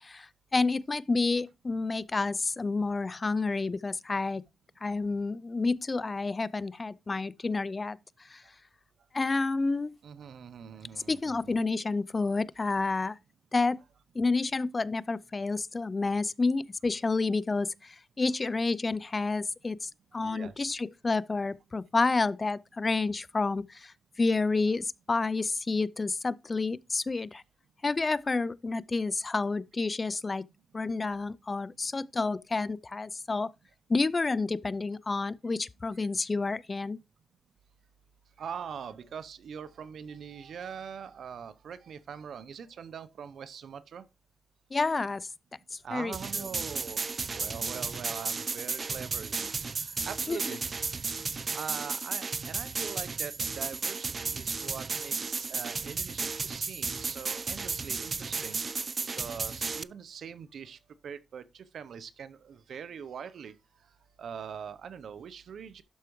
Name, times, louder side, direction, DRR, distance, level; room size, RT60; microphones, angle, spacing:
voice 1, 0.0-4.4 4.8-8.0 8.3-8.4 9.1-10.0 11.1-13.2 13.5-13.8 14.2-27.4 27.8-30.4 30.7-33.5 33.9-37.0 44.7-45.3 45.7-46.5 50.3-50.6, left 3 dB, 40° left, 0.4 m, -29 dB
voice 2, 10.0-11.6 20.2-20.7 38.4-44.0 45.8-47.0 47.3-50.6 51.3-58.6 59.2-63.5 64.2-65.8, right 7 dB, 85° right, 0.6 m, -42 dB
sound 1, 46.1-59.8, right 4 dB, 50° right, 0.3 m, -34 dB
11.5 x 4.7 x 3.0 m
cardioid pair, 65°, 0 cm